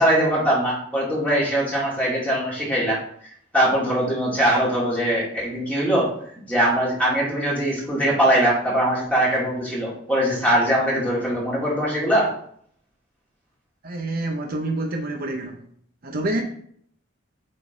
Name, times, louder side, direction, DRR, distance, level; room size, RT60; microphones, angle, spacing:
voice 1, 0.0-3.0 3.5-6.1 6.5-12.3, right 1 dB, 5° left, -6 dB, 2.1 m, -21 dB
voice 2, 13.8-15.6 16.0-16.4, right 2 dB, 50° right, 2 dB, 0.8 m, -27 dB
8.7 x 3.9 x 3.8 m, 0.64 s
head